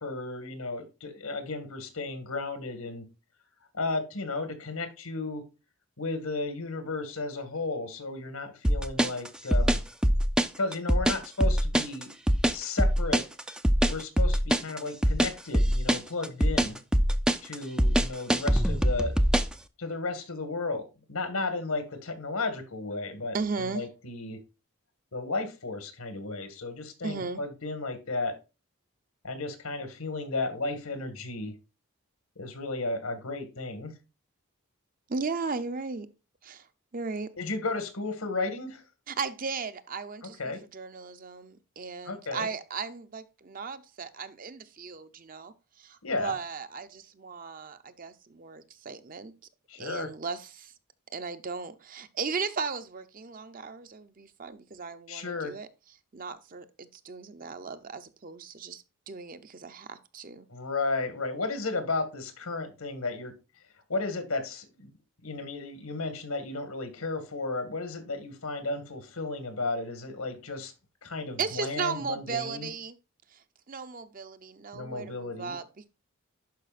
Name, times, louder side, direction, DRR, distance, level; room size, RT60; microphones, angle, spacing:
voice 1, 0.0-3.1 3.7-5.4 6.0-9.8 10.6-12.1 12.5-13.2 13.9-16.8 17.4-19.2 19.8-24.4 25.1-28.4 29.2-31.5 32.4-33.9 37.4-38.8 40.4-40.6 42.1-42.5 46.0-46.3 49.7-50.1 55.1-55.5 60.5-63.3 63.9-64.9 65.2-70.7 71.0-72.7 74.7-75.6, left 3 dB, 90° left, 1.9 m, -34 dB
sound 1, 8.6-19.6, equal, 5° right, 0.3 m, -23 dB
voice 2, 23.3-23.8 27.0-27.4 35.1-36.1 36.4-36.7 36.9-37.4 39.1-49.3 49.8-50.7 51.1-55.7 56.1-60.5 71.4-73.0 73.3-73.4 73.7-75.9, right 5 dB, 40° right, 0.6 m, -36 dB
11.5 x 4.9 x 2.5 m
head